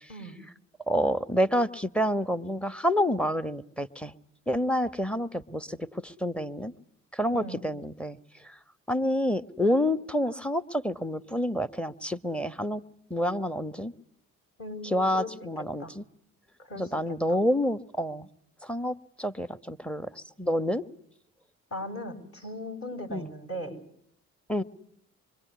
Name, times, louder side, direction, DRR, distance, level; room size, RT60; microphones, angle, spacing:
voice 1, 0.1-0.4 7.3-7.6 14.6-15.3 15.6-15.9 16.6-17.4 21.7-23.8, left 1 dB, 30° left, 4 dB, 6.0 m, -39 dB
voice 2, 0.9-4.1 4.5-6.7 7.1-8.2 8.4-8.5 8.9-12.8 13.1-13.9 14.8-16.0 16.8-18.3 18.6-20.8 23.1-23.3 24.5-24.6, equal, 5° left, 16 dB, 1.4 m, -28 dB
26.0 x 23.5 x 9.5 m, 0.72 s
hypercardioid pair, 50°, 41 cm